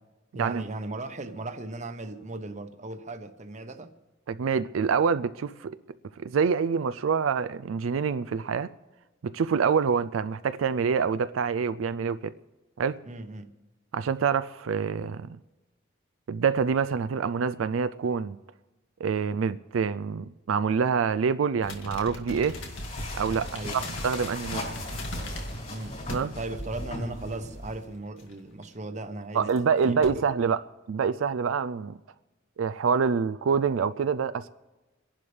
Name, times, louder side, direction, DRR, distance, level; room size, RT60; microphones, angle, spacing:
voice 1, 0.3-3.9 13.0-13.5 23.5-23.9 25.7-26.0 26.3-29.5 29.8-30.3, right 2 dB, 35° right, 0.9 m, -37 dB
voice 2, 4.3-5.8 6.2-8.7 9.2-12.3 12.8-13.0 13.9-15.4 16.3-18.4 19.0-22.6 23.1-24.7 26.1-26.3 29.3-30.6 30.9-32.0 32.6-34.5, right 6 dB, 90° right, 0.4 m, -26 dB
sound 1, 21.6-25.7 26.1-26.6 26.9-27.0 28.2-28.6 29.4-29.6 29.8-30.1, left 1 dB, 80° left, 2.0 m, -38 dB
sound 2, 22.4-27.9, left 1 dB, 40° left, 3.7 m, -38 dB
28.0 x 11.0 x 3.3 m
head